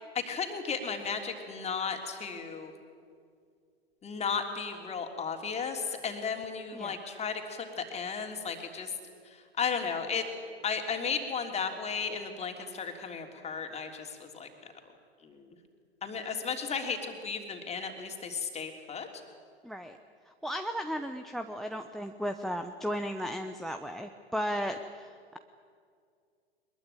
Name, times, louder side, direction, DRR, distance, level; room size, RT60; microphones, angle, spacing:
voice 1, 0.1-2.7 4.0-8.9 9.6-10.2 10.6-14.7 15.2-15.4 16.0-19.1, left 6 dB, 20° left, 4 dB, 3.2 m, -34 dB
voice 2, 19.6-20.0 20.4-25.4, equal, ahead, 8 dB, 0.8 m, -35 dB
22.5 x 21.5 x 9.1 m, 2.2 s
figure-of-eight pair, 100°, 32 cm